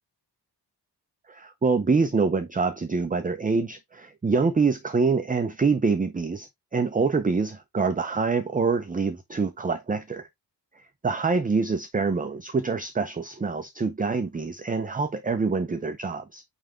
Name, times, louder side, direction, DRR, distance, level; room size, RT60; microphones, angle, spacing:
voice 1, 1.3-10.3 10.8-16.4, right 4 dB, 20° right, 0.5 m, -25 dB
9.0 x 3.4 x 3.3 m
wide cardioid pair, 165°, 42 cm